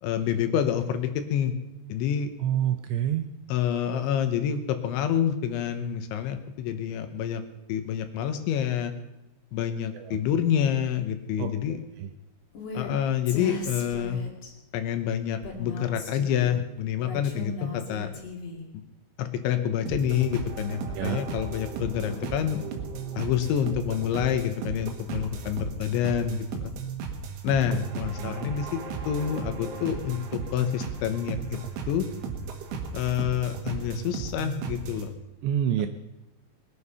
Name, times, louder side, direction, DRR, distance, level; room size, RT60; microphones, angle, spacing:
voice 1, 0.0-1.5 1.9-2.3 3.5-7.4 7.7-8.9 9.5-11.8 12.7-14.2 14.7-18.1 18.7-18.8 19.2-22.6 23.2-26.7 27.4-31.6 31.9-32.1 32.9-35.1 35.8-35.9, left 9 dB, 80° left, 8 dB, 3.3 m, -28 dB
voice 2, 2.4-3.3 9.9-10.2 11.4-11.5 12.0-12.1 21.0-21.2 27.7-27.8 28.2-28.3 35.4-35.9, right 10 dB, 80° right, 8 dB, 2.6 m, -27 dB
Female speech woman speaking, 12.5-12.9 13.3-14.5 15.4-16.5 17.0-18.6, left 3 dB, 45° left, 2.4 m, -37 dB
sound 1, 19.9-35.1, right 5 dB, 65° right, 3.2 m, -36 dB
21.0 x 9.8 x 5.6 m, 0.97 s
omnidirectional pair, 5.6 m